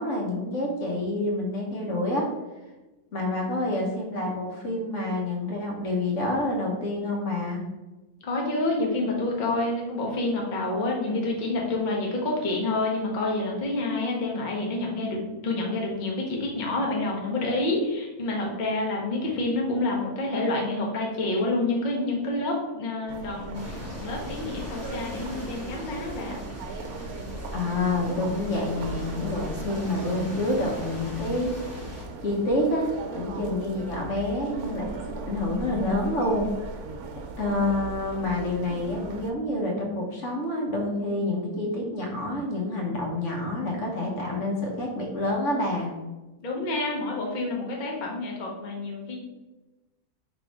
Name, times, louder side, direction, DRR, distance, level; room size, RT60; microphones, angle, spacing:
voice 1, 0.0-2.3 3.1-7.6 27.5-31.5 32.2-36.5 37.4-45.9, left 1 dB, 60° left, -1 dB, 1.2 m, -28 dB
voice 2, 8.2-26.4 46.4-49.2, left 2 dB, 40° left, -1 dB, 0.9 m, -28 dB
sound 1, 23.1-39.3, right 3 dB, 80° right, 1.1 m, -38 dB
sound 2, 23.5-32.0, left 1 dB, 10° right, 1.0 m, -41 dB
3.6 x 2.9 x 4.8 m, 1.1 s
omnidirectional pair, 1.6 m